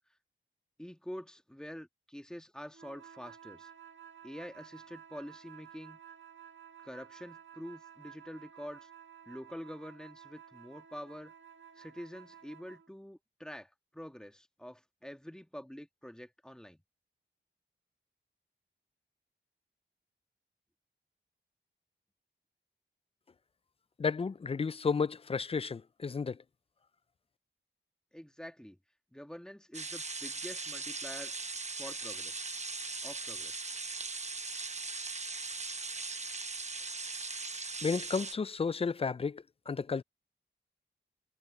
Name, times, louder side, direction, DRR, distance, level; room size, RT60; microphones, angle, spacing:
voice 1, 0.8-3.7 4.2-6.0 6.8-8.9 9.3-11.3 11.8-16.8 28.1-28.8 29.1-31.3 31.7-32.5 33.0-33.6, equal, 5° left, 2.0 m, -46 dB
sound 1, 2.7-12.9, right 8 dB, 75° right, 1.6 m, -54 dB
voice 2, 24.0-26.4 37.8-40.0, left 5 dB, 30° left, 0.3 m, -32 dB
sound 2, 29.7-38.3, right 3 dB, 35° right, 1.0 m, -39 dB
wide cardioid pair, 100°, 20 cm